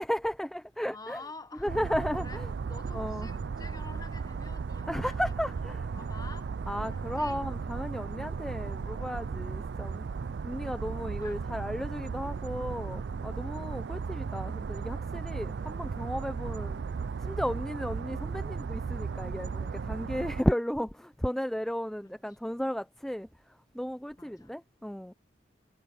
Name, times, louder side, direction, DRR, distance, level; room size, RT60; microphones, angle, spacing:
voice 1, 0.0-1.2 1.6-2.5 2.9-3.3 4.9-5.9 6.7-10.1 10.4-16.8 17.2-25.1, equal, 5° left, 0.5 m, -34 dB
voice 2, 0.9-2.4 2.7-5.2 5.7-6.5 6.8-7.4 11.2-11.4 13.6-13.8 16.4-16.6 24.2-24.6, left 3 dB, 20° left, 1.0 m, -48 dB
sound 1, 1.7-20.4, right 5 dB, 75° right, 0.4 m, -36 dB
Wind instrument woodwind instrument, 6.7-12.5 13.2-18.6, left 1 dB, 75° left, 5.2 m, -65 dB
head